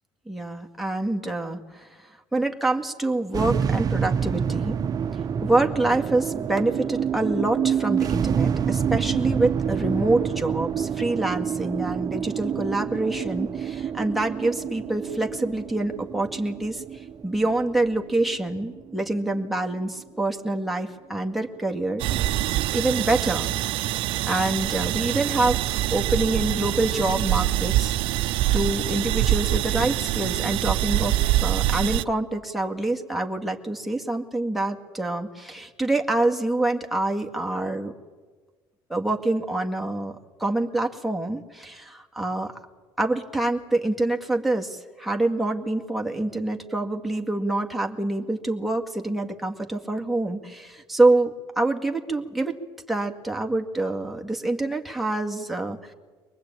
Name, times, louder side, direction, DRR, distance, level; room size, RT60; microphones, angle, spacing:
voice 1, 0.3-4.8 5.4-22.1 22.7-23.5 24.3-28.0 28.5-37.9 38.9-42.5 43.0-52.6 52.9-55.9, right 2 dB, ahead, 1 dB, 2.0 m, -26 dB
sound 1, 3.3-19.7, right 8 dB, 45° right, 0.9 m, -27 dB
sound 2, 22.0-32.0, right 15 dB, 70° right, 0.7 m, -25 dB
23.5 x 20.0 x 8.9 m, 1.4 s
cardioid pair, 100°, 9 cm